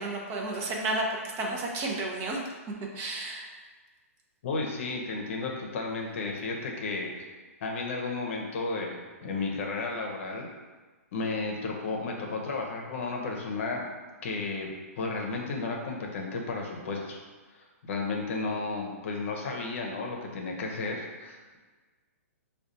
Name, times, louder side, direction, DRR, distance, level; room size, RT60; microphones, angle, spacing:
voice 1, 0.0-2.4 2.9-3.5, right 2 dB, 30° right, -1 dB, 0.6 m, -32 dB
voice 2, 4.4-7.1 7.6-10.5 11.1-13.9 14.2-17.2 17.6-21.6, left 3 dB, 55° left, 0 dB, 0.7 m, -33 dB
5.0 x 2.3 x 2.6 m, 1.3 s
hypercardioid pair, 135°, 8 cm